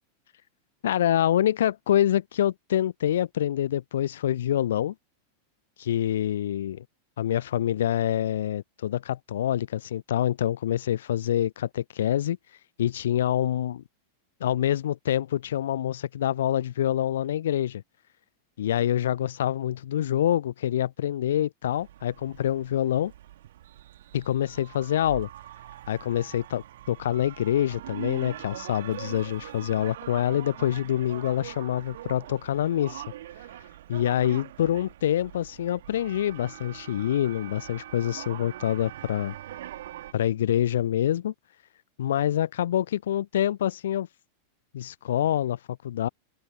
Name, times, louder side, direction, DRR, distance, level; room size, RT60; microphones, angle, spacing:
voice 1, 0.8-4.9 5.9-6.8 7.2-12.4 12.8-13.8 14.4-17.8 18.6-23.1 24.1-25.3 25.9-33.0 33.9-39.3 40.1-41.3 42.0-44.1 44.7-46.1, left 11 dB, 60° left, 0.5 m, -26 dB
sound 1, 21.7-40.1, right 13 dB, 60° right, 2.6 m, -43 dB
open air
figure-of-eight pair, 90°, 0 cm